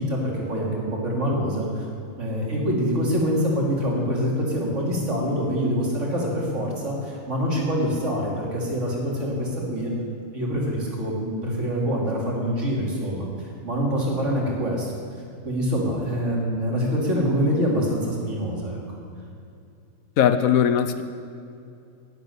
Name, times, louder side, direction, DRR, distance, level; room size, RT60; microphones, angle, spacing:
voice 1, 0.0-1.9 2.2-9.9 10.3-14.9 15.4-18.8, equal, 60° right, -3 dB, 3.2 m, -25 dB
voice 2, 20.2-21.0, left 9 dB, 80° left, 10 dB, 1.2 m, -19 dB
12.5 x 8.0 x 9.5 m, 2.5 s
omnidirectional pair, 1.5 m